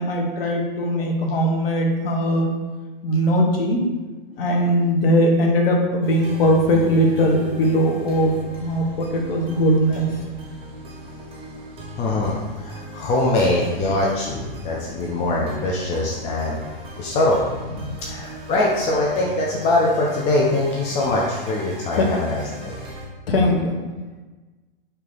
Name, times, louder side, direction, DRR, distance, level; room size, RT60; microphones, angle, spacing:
voice 1, 0.0-2.5 3.0-3.9 4.3-8.3 8.6-10.1 17.8-17.9 21.9-22.1 23.3-23.8, equal, 75° left, 1 dB, 0.9 m, -20 dB
sound 1, 6.0-23.1, equal, 20° right, 0.8 m, -38 dB
voice 2, 11.9-16.6 17.0-17.4 18.0-22.8, left 2 dB, 25° left, -3 dB, 0.4 m, -22 dB
3.2 x 2.8 x 3.7 m, 1.2 s
hypercardioid pair, 115°, 29 cm